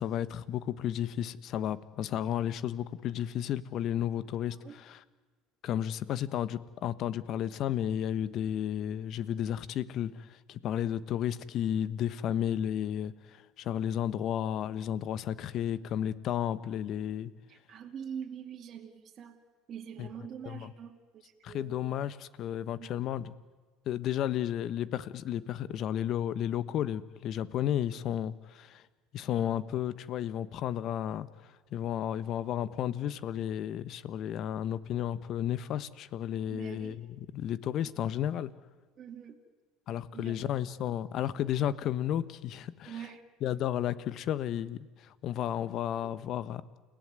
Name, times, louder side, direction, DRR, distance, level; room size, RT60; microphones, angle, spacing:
voice 1, 0.0-5.0 5.6-17.3 20.0-20.1 20.4-20.7 21.4-23.3 23.8-28.8 29.1-38.5 39.9-43.0 43.4-46.6, left 10 dB, 55° left, 16 dB, 1.3 m, -33 dB
voice 2, 4.5-4.8 17.5-19.4 19.7-21.9 22.7-23.0 36.5-37.0 37.8-38.0 39.0-39.4 40.1-40.4 42.8-43.2 45.9-46.1, right 8 dB, 45° right, 1 dB, 2.6 m, -44 dB
29.5 x 17.0 x 9.5 m, 1.4 s
hypercardioid pair, 80°, 0 cm